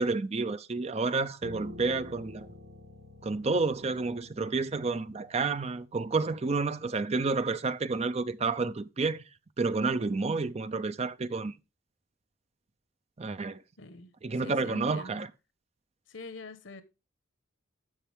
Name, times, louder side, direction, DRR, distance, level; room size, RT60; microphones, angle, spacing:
voice 1, 0.0-2.5 3.2-9.2 9.6-11.6 13.2-13.6 14.2-15.3, right 3 dB, 30° right, 0.5 m, -30 dB
Piano, 1.4-6.7, left 2 dB, 70° right, 3.5 m, -49 dB
voice 2, 13.8-14.1 14.4-15.2 16.1-16.8, left 3 dB, 65° left, 1.2 m, -45 dB
10.0 x 7.2 x 3.5 m
head